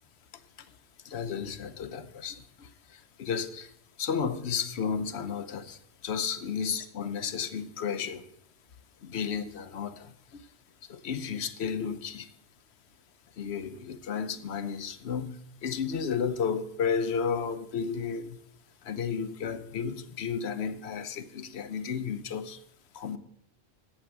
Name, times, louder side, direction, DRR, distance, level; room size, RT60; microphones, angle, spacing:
voice 1, 1.0-3.7 4.0-8.3 9.0-10.5 10.9-12.3 13.4-18.4 18.8-22.6 22.9-23.2, left 6 dB, 70° left, 1.0 m, -33 dB
8.8 x 8.2 x 6.3 m
omnidirectional pair, 1.2 m